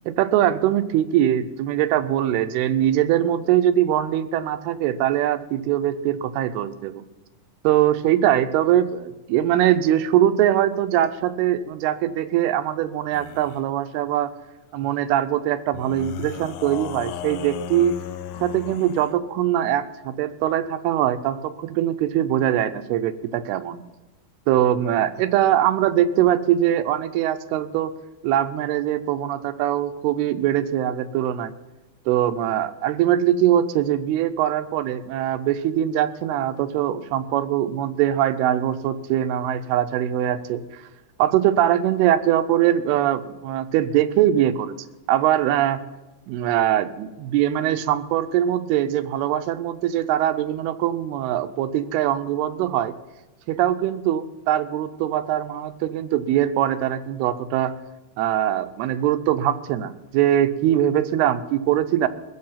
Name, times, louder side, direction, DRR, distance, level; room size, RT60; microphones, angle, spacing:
voice 1, 0.1-7.0 7.6-14.3 14.7-17.9 18.4-23.8 24.5-27.9 28.2-31.5 32.1-40.8 41.2-44.7 45.1-45.8 46.3-52.9 53.5-57.7 58.2-62.1, right 11 dB, 85° right, 11 dB, 2.7 m, -22 dB
sound 1, 13.1-13.6 15.7-19.2, left 10 dB, 80° left, 2.1 m, -35 dB
22.5 x 7.6 x 5.7 m, 1.1 s
omnidirectional pair, 4.5 m